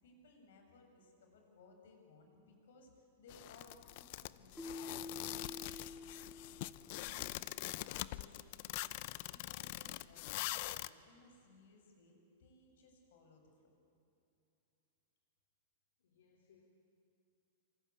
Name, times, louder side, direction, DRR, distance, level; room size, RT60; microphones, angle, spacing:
voice 1, 0.0-3.7 4.0-13.7, left 2 dB, 70° left, 3 dB, 6.8 m, -63 dB
sound 1, 3.3-10.9, left 17 dB, 45° left, 0.6 m, -43 dB
Keyboard (musical), 4.6-7.4, left 3 dB, 5° left, 0.8 m, -49 dB
voice 2, 16.0-16.6, left 7 dB, 85° left, 0 dB, 3.9 m, -68 dB
26.5 x 25.0 x 8.6 m, 2.7 s
supercardioid pair, 160°, 0 cm